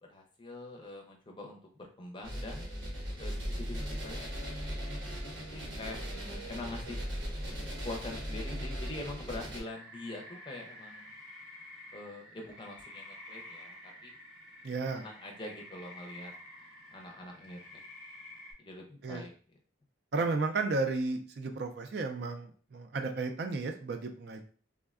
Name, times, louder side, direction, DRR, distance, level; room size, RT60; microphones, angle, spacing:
voice 1, 0.0-2.7 3.2-4.5 5.2-6.0 6.5-7.0 7.8-11.1 11.9-14.1 14.9-16.3 16.9-17.8 18.6-19.3, left 2 dB, 25° left, 1 dB, 0.5 m, -44 dB
sound 1, 2.2-9.6, equal, 80° right, 0.9 m, -38 dB
sound 2, 9.7-18.5, left 1 dB, 5° right, 0.9 m, -50 dB
voice 2, 14.6-15.0 19.0-19.3 20.1-24.4, right 3 dB, 55° right, 5 dB, 0.4 m, -33 dB
3.4 x 2.1 x 2.4 m, 0.41 s
head